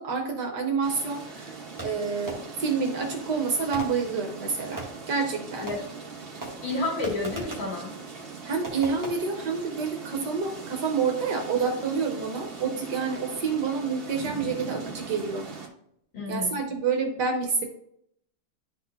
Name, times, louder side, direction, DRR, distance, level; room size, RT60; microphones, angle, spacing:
voice 1, 0.0-1.5 1.8-5.7 8.4-15.5 16.3-17.7, right 5 dB, 65° right, 3 dB, 1.3 m, -28 dB
sound 1, 0.8-15.7, right 5 dB, 40° right, 0.9 m, -40 dB
Fireworks, 1.8-2.7 3.7-5.1 5.7-6.1 6.4-7.8 8.6-9.1, right 2 dB, 15° right, 0.9 m, -40 dB
voice 2, 6.3-7.9 16.1-16.6, left 3 dB, 65° left, -3 dB, 3.0 m, -31 dB
11.0 x 4.2 x 2.6 m, 0.72 s
omnidirectional pair, 2.3 m